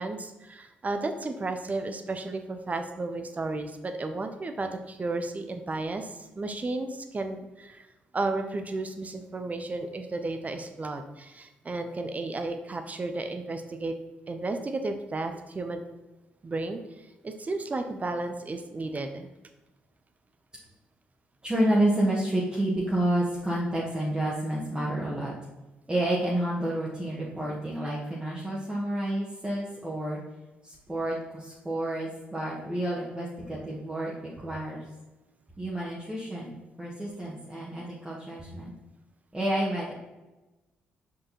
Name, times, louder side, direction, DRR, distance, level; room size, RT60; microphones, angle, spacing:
voice 1, 0.0-7.9 8.1-13.9 14.3-15.8 16.4-19.3, right 2 dB, 30° right, 6 dB, 1.0 m, -33 dB
voice 2, 21.4-25.3 25.9-30.2 30.6-34.1 34.4-34.9 35.6-38.7 39.3-39.9, right 1 dB, 15° right, -7 dB, 2.1 m, -29 dB
7.3 x 5.1 x 4.4 m, 1.1 s
figure-of-eight pair, 45°, 5 cm